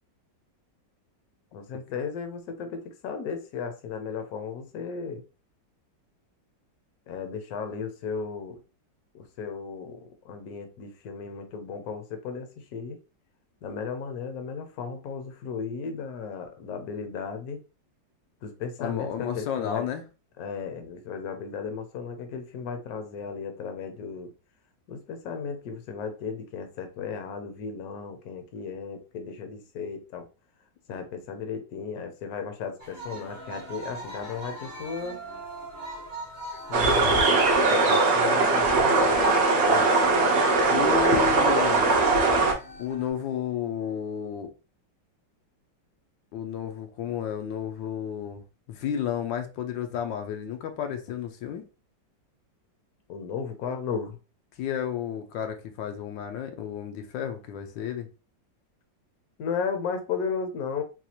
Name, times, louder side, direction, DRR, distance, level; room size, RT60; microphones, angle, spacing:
voice 1, 1.5-5.2 7.1-8.6 9.1-13.0 13.6-17.6 18.4-19.9 20.4-24.3 24.9-30.3 30.9-35.2 36.7-40.4 53.1-54.2 59.4-60.8, left 6 dB, 65° left, 1.1 m, -35 dB
voice 2, 18.8-20.0 40.7-42.0 42.8-44.5 46.3-48.4 48.7-51.6 54.6-58.1, left 8 dB, 85° left, 1.3 m, -32 dB
sound 1, 32.8-43.1, right 2 dB, 20° left, 0.5 m, -39 dB
sound 2, 36.7-42.5, right 3 dB, 65° right, 0.6 m, -21 dB
4.1 x 2.4 x 2.8 m
omnidirectional pair, 2.0 m